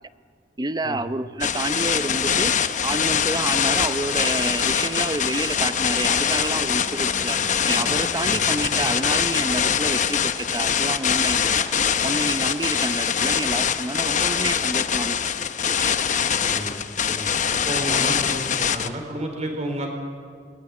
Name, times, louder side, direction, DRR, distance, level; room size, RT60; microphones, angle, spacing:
voice 1, 0.6-2.5 2.8-7.4 7.7-11.5 12.0-15.2 15.6-16.0, right 2 dB, 25° right, 12 dB, 0.7 m, -29 dB
sound 1, 1.4-18.9, left 7 dB, 45° left, 0.9 m, -23 dB
sound 2, 4.3-15.4, left 1 dB, 20° left, 3.7 m, -45 dB
voice 2, 16.4-16.8 17.1-19.9, right 1 dB, 40° right, 3 dB, 4.5 m, -31 dB
21.5 x 19.5 x 9.9 m, 2.1 s
head